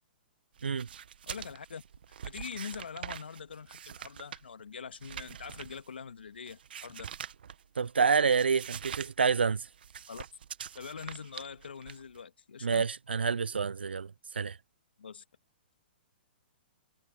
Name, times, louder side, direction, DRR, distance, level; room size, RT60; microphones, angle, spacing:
sound 1, 0.6-7.9 8.2-9.1 9.4-12.2, right 8 dB, 70° right, 1.4 m, -45 dB
voice 1, 1.3-1.8 2.2-7.1 10.1-10.2 10.8-12.9 15.0-15.2, left 6 dB, 80° left, 2.1 m, -43 dB
voice 2, 7.8-9.7 12.6-14.6, right 5 dB, 90° right, 0.4 m, -28 dB
hypercardioid pair, 120°, 5 cm